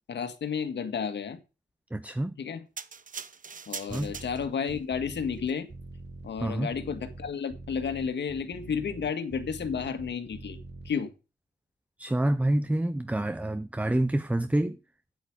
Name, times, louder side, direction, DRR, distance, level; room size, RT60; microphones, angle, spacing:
voice 1, 0.1-1.4 2.4-2.7 3.7-5.7 6.2-10.6 10.9-11.1, left 6 dB, 70° left, 1.8 m, -32 dB
voice 2, 1.9-2.3 3.9-4.1 6.4-6.7 12.0-14.7, right 1 dB, 5° right, 0.6 m, -27 dB
sound 1, 2.8-4.7 5.4-5.5, right 6 dB, 45° right, 1.0 m, -41 dB
sound 2, 3.9-10.9, right 3 dB, 60° right, 3.2 m, -44 dB
9.1 x 8.7 x 4.9 m
cardioid pair, 95°, 19 cm